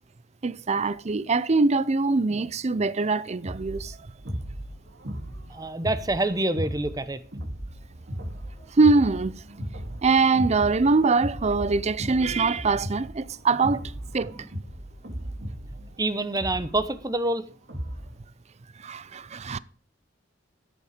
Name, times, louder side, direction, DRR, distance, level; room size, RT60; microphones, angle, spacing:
voice 1, 0.4-4.0 8.7-9.4 10.0-13.8 14.1-14.3 18.8-19.6, right 3 dB, 35° right, 0.5 m, -23 dB
sound 1, 3.4-18.2, equal, 60° right, 2.5 m, -36 dB
voice 2, 5.5-7.2 16.0-17.4, right 2 dB, 20° right, 0.9 m, -26 dB
13.5 x 8.4 x 5.0 m
head